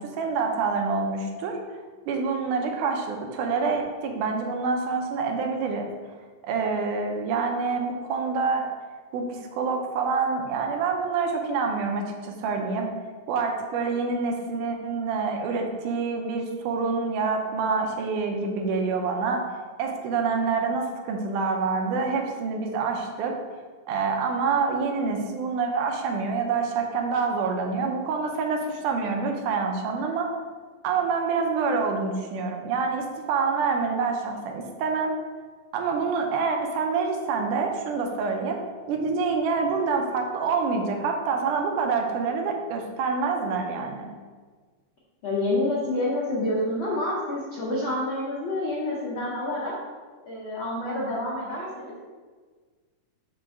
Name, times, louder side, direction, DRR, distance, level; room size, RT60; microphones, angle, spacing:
voice 1, 0.0-1.6 2.1-5.9 6.4-8.7 9.1-12.9 13.3-19.4 19.8-23.4 23.9-30.3 30.8-35.1 35.7-38.6 38.9-44.1, right 4 dB, 90° right, 3 dB, 2.2 m, -26 dB
voice 2, 45.2-49.7 50.2-52.0, left 1 dB, 80° left, -5 dB, 1.1 m, -28 dB
5.6 x 5.1 x 3.6 m, 1.5 s
omnidirectional pair, 3.6 m